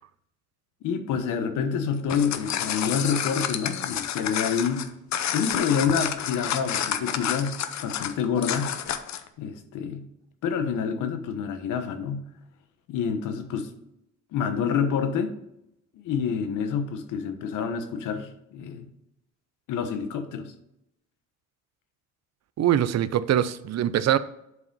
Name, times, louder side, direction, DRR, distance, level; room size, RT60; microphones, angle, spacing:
voice 1, 0.8-4.9 5.3-8.7 9.4-10.1 10.4-12.3 12.9-13.7 14.3-15.3 15.9-18.9 19.7-20.5, left 6 dB, 90° left, 1.1 m, -28 dB
sound 1, 1.9-9.3, left 9 dB, 65° left, 0.8 m, -29 dB
voice 2, 22.6-24.2, right 11 dB, 60° right, 0.6 m, -23 dB
8.1 x 5.0 x 5.4 m
cardioid pair, 90°, 30 cm